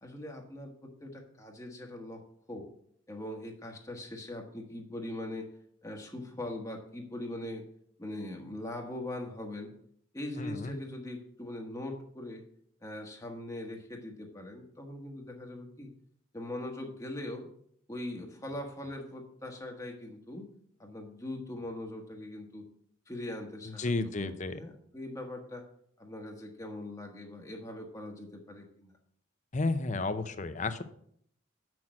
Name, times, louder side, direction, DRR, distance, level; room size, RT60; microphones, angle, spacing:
voice 1, 0.0-2.7 3.1-5.5 5.8-7.6 8.0-9.7 10.1-12.4 12.8-15.9 16.3-17.5 17.9-20.5 20.8-22.7 23.1-25.7 26.0-28.9, left 1 dB, 15° left, 1 dB, 1.2 m, -41 dB
voice 2, 10.4-10.8 23.8-24.6 29.5-30.8, left 3 dB, 40° left, 11 dB, 0.7 m, -32 dB
7.5 x 6.2 x 7.5 m, 0.66 s
head